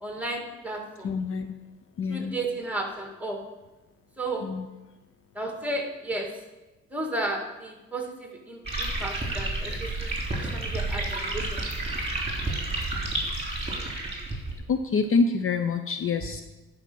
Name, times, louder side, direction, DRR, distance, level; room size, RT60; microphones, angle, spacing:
voice 1, 0.0-1.1 2.1-3.4 4.2-4.5 5.4-6.3 6.9-10.1 10.4-11.6, right 2 dB, 5° right, 2 dB, 2.1 m, -33 dB
voice 2, 1.0-1.5 2.0-2.3 4.4-4.7 14.7-16.4, left 4 dB, 45° left, 8 dB, 0.6 m, -26 dB
sound 1, 8.6-14.5, right 2 dB, 20° right, 3.4 m, -30 dB
11.0 x 5.1 x 6.2 m, 1.1 s
cardioid pair, 90°, 30 cm